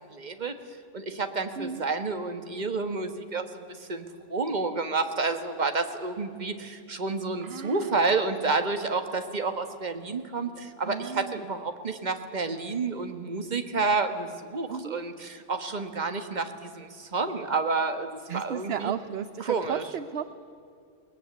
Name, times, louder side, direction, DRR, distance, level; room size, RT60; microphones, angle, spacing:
voice 1, 0.1-0.5 0.9-18.9 19.4-19.8, right 4 dB, 35° right, 8 dB, 1.5 m, -30 dB
voice 2, 7.4-8.0 10.8-11.5 14.7-15.0 16.0-16.1 18.3-20.3, right 7 dB, 55° right, 12 dB, 0.9 m, -34 dB
21.5 x 19.5 x 9.3 m, 2.4 s
omnidirectional pair, 1.3 m